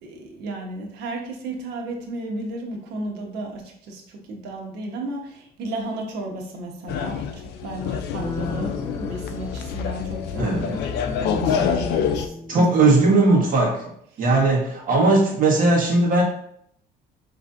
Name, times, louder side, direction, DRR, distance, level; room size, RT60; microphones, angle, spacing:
voice 1, 0.0-10.8 11.2-13.3, right 2 dB, 80° right, 1 dB, 1.1 m, -34 dB
sound 1, 6.9-12.3, left 7 dB, 80° left, 0.5 m, -27 dB
sound 2, 8.1-13.5, left 2 dB, 20° left, 0.4 m, -34 dB
voice 2, 10.4-10.7 12.5-13.9 14.2-16.2, right 2 dB, 55° right, -2 dB, 1.5 m, -18 dB
5.4 x 3.1 x 2.6 m, 0.69 s
cardioid pair, 110°, 17 cm